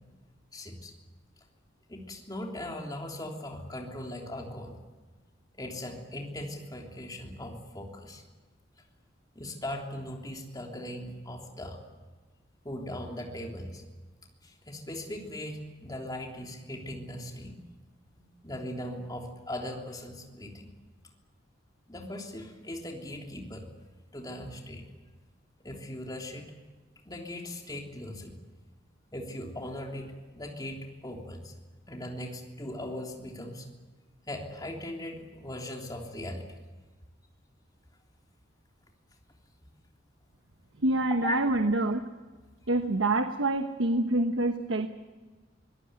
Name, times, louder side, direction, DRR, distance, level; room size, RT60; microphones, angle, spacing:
voice 1, 0.5-0.9 1.9-4.7 5.6-8.2 9.3-11.8 12.6-13.8 14.4-17.6 18.1-20.7 21.9-23.7 24.1-24.8 25.6-26.5 27.0-28.3 29.1-31.5 31.9-33.7 34.3-36.5 41.1-41.4, left 1 dB, 20° left, 1 dB, 3.3 m, -39 dB
voice 2, 40.8-42.0 42.7-44.9, right 2 dB, 80° right, 7 dB, 1.2 m, -26 dB
25.0 x 18.0 x 9.5 m, 1.3 s
head